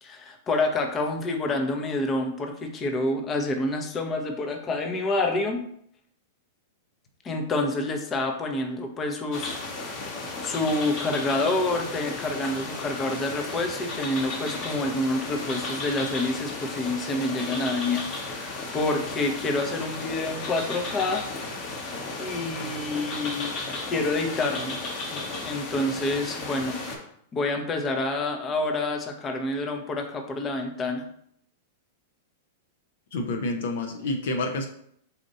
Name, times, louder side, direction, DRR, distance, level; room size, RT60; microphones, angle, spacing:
voice 1, 0.0-5.6 7.2-9.6 10.4-21.3 22.2-23.5 23.9-24.7 25.1-27.0 27.3-31.0, left 2 dB, 25° left, 4 dB, 0.7 m, -28 dB
sound 1, 9.3-27.0, left 3 dB, 45° left, 1.0 m, -34 dB
voice 2, 33.1-34.7, left 2 dB, 70° left, 4 dB, 0.6 m, -28 dB
4.2 x 2.5 x 3.9 m, 0.67 s
hypercardioid pair, 110°, 0 cm